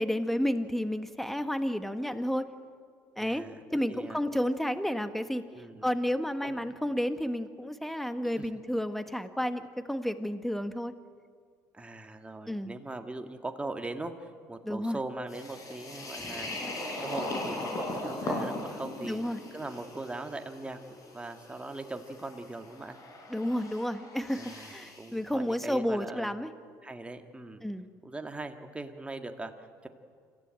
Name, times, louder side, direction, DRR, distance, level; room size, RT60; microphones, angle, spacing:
voice 1, 0.0-2.5 3.2-3.4 3.7-5.4 5.8-10.9 12.5-12.8 14.6-15.0 16.1-16.5 19.0-19.4 23.3-26.5 27.6-27.9, equal, 5° left, 10 dB, 1.5 m, -31 dB
voice 2, 3.2-4.2 5.5-5.9 6.4-6.6 8.4-8.5 11.7-16.6 17.0-19.2 19.5-23.0 24.3-26.3 26.8-27.6 28.0-29.9, right 2 dB, 15° right, 5 dB, 2.0 m, -40 dB
sound 1, 15.3-25.1, left 1 dB, 45° left, 5.6 m, -39 dB
26.0 x 15.0 x 8.9 m, 2.1 s
supercardioid pair, 75°, 8 cm